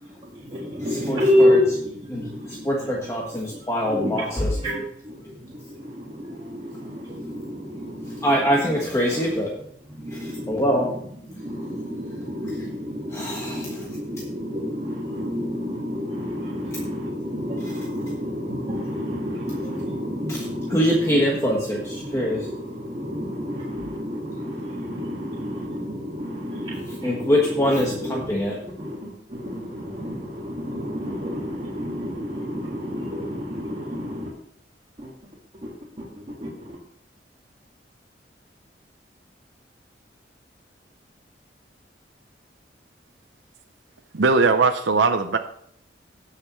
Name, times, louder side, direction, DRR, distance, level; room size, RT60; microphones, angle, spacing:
voice 1, 0.0-3.1 3.5-8.7 9.9-28.3 28.6-34.3 35.0-35.1 36.0-36.8, left 1 dB, 35° right, 1.8 m, -29 dB
voice 2, 0.8-1.6 2.1-4.6 8.2-9.5 10.1-10.9 13.1-13.9 20.3-20.4 20.7-22.5 27.0-28.6, equal, 15° left, 1.4 m, -24 dB
voice 3, 44.1-45.4, right 4 dB, 85° right, 0.6 m, -19 dB
17.5 x 6.6 x 3.1 m
head